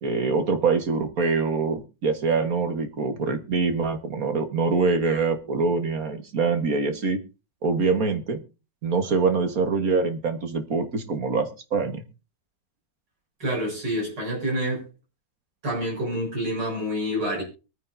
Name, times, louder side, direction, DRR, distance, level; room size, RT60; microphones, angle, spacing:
voice 1, 0.0-7.2 7.6-8.4 8.8-12.0, right 4 dB, 55° right, 1.9 m, -24 dB
voice 2, 13.4-14.8 15.6-17.4, equal, 80° right, 7.2 m, -27 dB
23.5 x 9.6 x 2.7 m
omnidirectional pair, 1.9 m